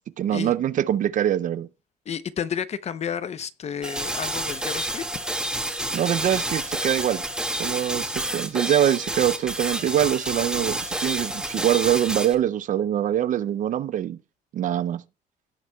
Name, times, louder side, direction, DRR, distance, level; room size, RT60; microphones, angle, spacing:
voice 1, 0.2-1.7 5.9-7.2 7.6-14.2 14.5-15.0, right 11 dB, 50° right, 0.5 m, -24 dB
voice 2, 2.1-5.0, left 8 dB, 40° left, 0.7 m, -31 dB
sound 1, 3.8-12.3, right 1 dB, 5° right, 1.9 m, -29 dB
17.0 x 7.2 x 2.2 m
cardioid pair, 110°, 17 cm